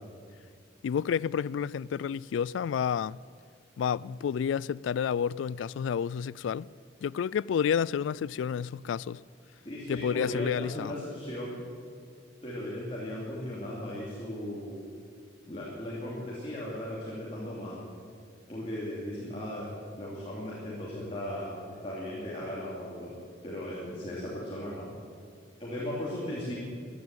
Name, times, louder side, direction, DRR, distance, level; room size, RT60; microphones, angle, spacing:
voice 1, 0.8-3.2 3.8-6.7 7.0-9.2 9.9-10.9, left 7 dB, 90° left, 0.3 m, -30 dB
voice 2, 9.6-11.6 12.4-14.8 15.5-17.9 18.5-23.1 23.4-24.9 25.6-26.5, left 1 dB, 30° left, 2.8 m, -37 dB
15.5 x 10.0 x 8.3 m
head